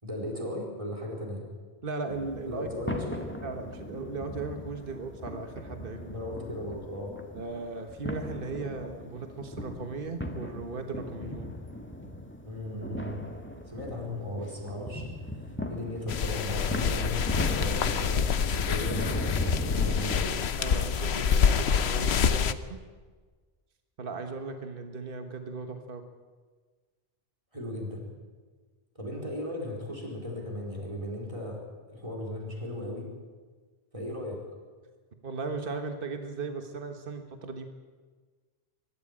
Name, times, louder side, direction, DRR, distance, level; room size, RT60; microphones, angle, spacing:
voice 1, 0.0-1.4 2.5-3.2 6.1-7.1 12.4-13.2 13.7-20.4 27.5-28.0 28.9-31.6 31.9-33.1 33.9-34.4, left 1 dB, 30° right, -2 dB, 4.6 m, -36 dB
voice 2, 1.8-2.7 3.4-6.2 7.3-11.5 20.6-22.8 24.0-26.0 35.2-37.7, right 3 dB, 60° right, 6 dB, 1.5 m, -37 dB
sound 1, 2.1-20.2, left 1 dB, 10° left, 1.6 m, -38 dB
sound 2, 16.1-22.5, left 7 dB, 90° left, 1.1 m, -26 dB
23.0 x 13.0 x 8.9 m, 1.5 s
omnidirectional pair, 1.1 m